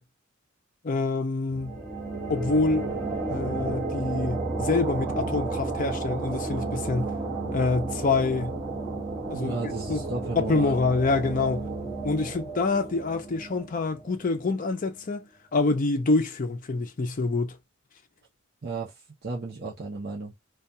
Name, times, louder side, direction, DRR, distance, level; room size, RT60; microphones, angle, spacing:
voice 1, 0.8-1.8 2.3-2.9 3.3-7.1 7.5-8.6 9.3-9.6 9.9-10.0 10.4-11.7 12.0-17.6, left 3 dB, 40° left, 0.5 m, -26 dB
sound 1, 1.5-14.9, right 3 dB, 10° right, 1.2 m, -32 dB
voice 2, 9.3-10.8 18.6-18.9 19.2-20.3, right 3 dB, 50° right, 0.6 m, -33 dB
2.3 x 2.3 x 2.7 m
head